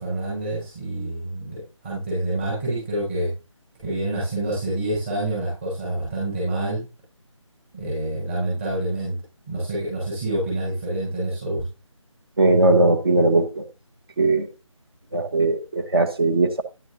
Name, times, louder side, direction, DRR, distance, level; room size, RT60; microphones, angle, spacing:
voice 1, 0.0-3.3 3.8-6.8 7.7-9.2 9.5-11.6, right 1 dB, 25° right, 6.8 m, -27 dB
voice 2, 12.4-13.6 14.2-14.5 15.1-16.6, right 2 dB, 45° right, 1.5 m, -19 dB
12.0 x 9.7 x 2.8 m
figure-of-eight pair, 165°, 17 cm